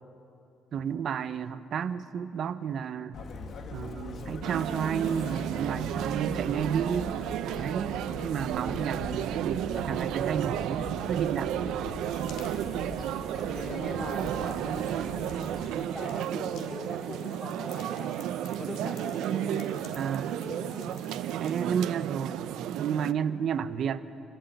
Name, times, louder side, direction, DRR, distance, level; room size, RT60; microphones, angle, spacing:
voice 1, 0.7-3.2 3.7-7.2 7.5-11.5 20.0-20.4 21.4-22.4 22.8-24.1, right 7 dB, 50° right, 13 dB, 0.7 m, -32 dB
Chirp tweet, 3.1-15.7, left 3 dB, 50° left, 1.5 m, -42 dB
sound 1, 4.4-23.1, right 11 dB, 90° right, 0.5 m, -33 dB
voice 2, 9.7-10.4 13.3-15.4 15.7-18.2 18.5-19.7 20.3-20.9, left 1 dB, 15° left, 0 dB, 2.9 m, -41 dB
sound 2, 12.0-21.6, left 8 dB, 90° left, 2.2 m, -55 dB
26.0 x 12.0 x 9.0 m, 2.9 s
cardioid pair, 155°, 0 cm